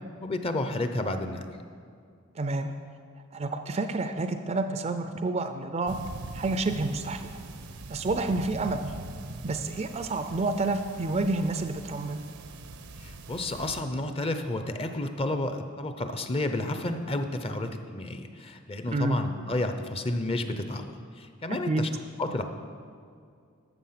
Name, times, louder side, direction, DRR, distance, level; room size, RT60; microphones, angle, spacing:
voice 1, 0.2-1.4 13.0-21.9 22.2-22.4, left 1 dB, 25° left, 7 dB, 0.6 m, -31 dB
voice 2, 2.4-2.7 3.3-6.0 6.3-7.2 7.9-8.8 9.4-12.2 18.9-19.2 21.5-21.9, right 2 dB, 30° right, 8 dB, 0.4 m, -29 dB
sound 1, 5.9-13.8, right 2 dB, 90° right, 0.8 m, -42 dB
13.0 x 7.1 x 5.7 m, 2.3 s
head